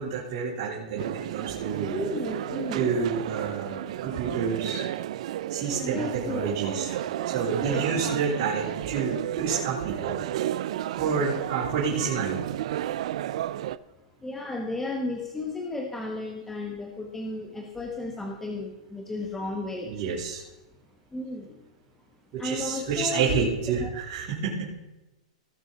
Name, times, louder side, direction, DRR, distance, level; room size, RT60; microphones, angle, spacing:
voice 1, 0.0-2.0 2.7-4.8 5.5-6.9 7.2-10.2 11.0-12.4 19.8-20.4 22.3-24.7, right 5 dB, 40° right, -7 dB, 3.4 m, -29 dB
sound 1, 1.0-13.8, right 12 dB, 60° right, 0.4 m, -32 dB
voice 2, 1.9-3.0 5.8-6.5 7.6-7.9 14.2-19.9 21.1-21.5 22.4-23.4 23.8-23.9, left 2 dB, 10° left, 1 dB, 1.1 m, -33 dB
18.0 x 6.1 x 3.9 m, 1.0 s
hypercardioid pair, 145°, 4 cm